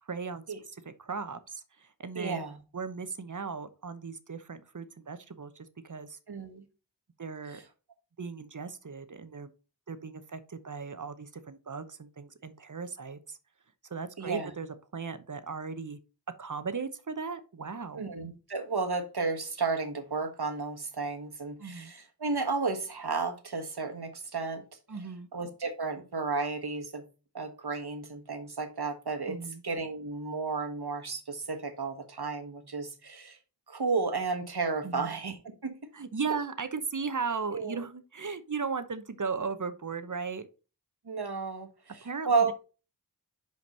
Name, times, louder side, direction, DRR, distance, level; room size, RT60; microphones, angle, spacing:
voice 1, 0.1-0.4 1.0-2.5 2.7-6.2 7.2-7.6 8.2-9.5 9.9-13.4 13.9-16.0 16.4-18.0 21.6-21.9 24.9-25.3 29.3-29.6 34.8-35.2 35.9-40.5 42.0-42.5, right 5 dB, 45° right, 12 dB, 0.9 m, -37 dB
voice 2, 2.1-2.6 6.3-6.6 7.5-7.6 14.2-14.5 18.0-24.6 25.3-27.0 27.3-29.4 29.6-33.4 33.7-35.8 37.5-37.8 41.0-42.5, right 4 dB, 65° right, 5 dB, 1.4 m, -33 dB
5.3 x 5.2 x 5.3 m, 0.33 s
wide cardioid pair, 40°, 42 cm